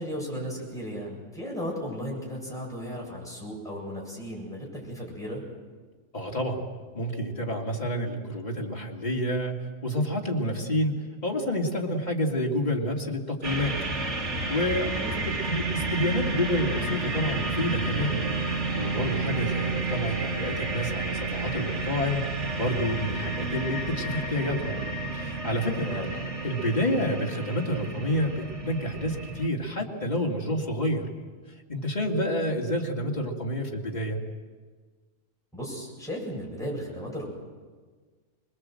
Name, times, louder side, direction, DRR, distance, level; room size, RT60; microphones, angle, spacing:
voice 1, 0.0-5.4 14.9-15.3 25.9-26.1 35.5-37.3, equal, 5° left, -3 dB, 7.8 m, -35 dB
voice 2, 6.1-6.6 6.9-13.8 14.5-14.9 15.2-18.2 18.8-22.2 22.5-24.8 25.1-25.9 26.4-31.1 31.7-34.2, equal, 35° left, -1 dB, 3.0 m, -29 dB
sound 1, 13.4-29.5, right 3 dB, 75° right, 2.8 m, -31 dB
26.0 x 21.0 x 7.9 m, 1.5 s
omnidirectional pair, 1.2 m